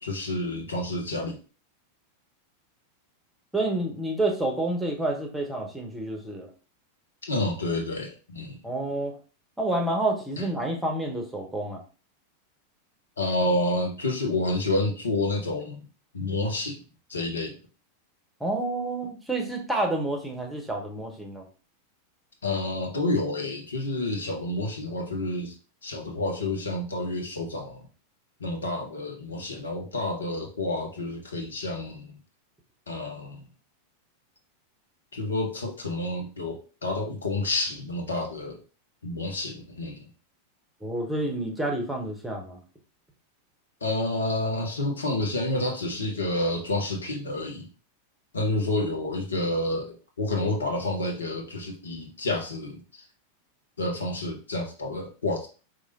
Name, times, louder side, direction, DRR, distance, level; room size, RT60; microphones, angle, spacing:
voice 1, 0.0-1.4 7.2-8.6 10.4-10.5 13.2-15.8 16.1-16.8 17.1-17.6 22.4-25.5 25.8-27.8 28.4-32.1 32.9-33.4 35.1-38.6 39.0-40.0 43.8-47.7 48.3-53.0 53.8-55.5, left 2 dB, 70° left, 1 dB, 0.9 m, -29 dB
voice 2, 3.5-6.5 8.6-9.1 9.6-11.8 18.4-21.4 40.8-42.6, right 2 dB, 5° right, 1 dB, 1.0 m, -29 dB
4.7 x 2.7 x 2.7 m, 0.35 s
figure-of-eight pair, 90°, 0 cm